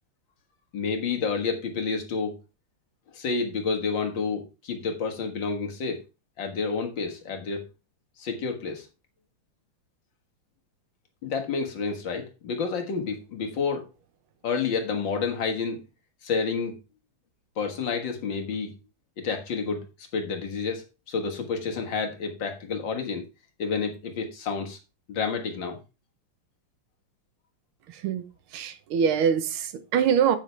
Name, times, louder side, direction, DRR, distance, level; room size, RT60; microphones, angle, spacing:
voice 1, 0.7-2.4 3.1-6.0 6.4-7.7 8.2-8.9 11.2-13.9 14.4-15.8 16.2-16.8 17.6-18.7 19.2-19.9 20.1-23.3 23.6-24.8 25.1-25.8, left 5 dB, 65° left, 2.2 m, -29 dB
voice 2, 28.5-30.4, right 7 dB, 80° right, 1.8 m, -23 dB
9.1 x 8.1 x 3.3 m
omnidirectional pair, 2.3 m